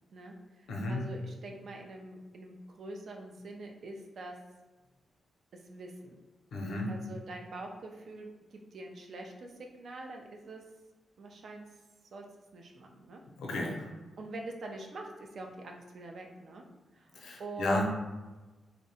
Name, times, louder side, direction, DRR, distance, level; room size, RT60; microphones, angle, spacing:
voice 1, 0.1-4.4 5.5-6.2 6.9-9.5 9.8-10.6 11.2-11.8 12.1-12.3 12.5-13.2 14.2-16.6 16.9-17.8, right 2 dB, 65° right, 2 dB, 0.4 m, -45 dB
voice 2, 0.7-1.1 6.5-6.9 13.4-13.9 17.1-17.8, left 1 dB, 85° left, 0 dB, 0.5 m, -32 dB
2.6 x 2.1 x 2.7 m, 1.2 s
cardioid pair, 95°, 0 cm